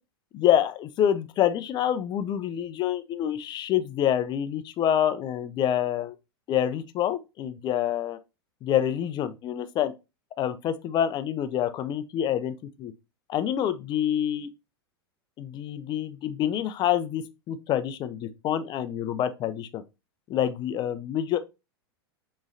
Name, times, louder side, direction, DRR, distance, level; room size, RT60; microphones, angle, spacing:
voice 1, 0.3-6.2 6.5-8.2 8.6-9.9 10.4-12.9 13.3-14.5 15.4-19.8 20.3-21.4, left 10 dB, 35° left, 0.5 m, -27 dB
6.1 x 3.1 x 2.6 m
hypercardioid pair, 95°, 13 cm